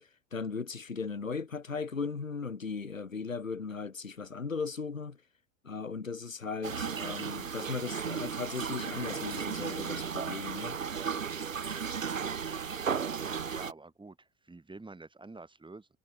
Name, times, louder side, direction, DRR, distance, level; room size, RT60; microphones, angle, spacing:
voice 1, 0.0-5.2 5.6-10.8 11.6-11.8, left 5 dB, 90° left, 1.1 m, -37 dB
sound 1, 6.6-13.7, right 6 dB, 80° right, 2.4 m, -35 dB
voice 2, 13.5-15.9, right 3 dB, 10° right, 5.4 m, -48 dB
figure-of-eight pair, 65°, 39 cm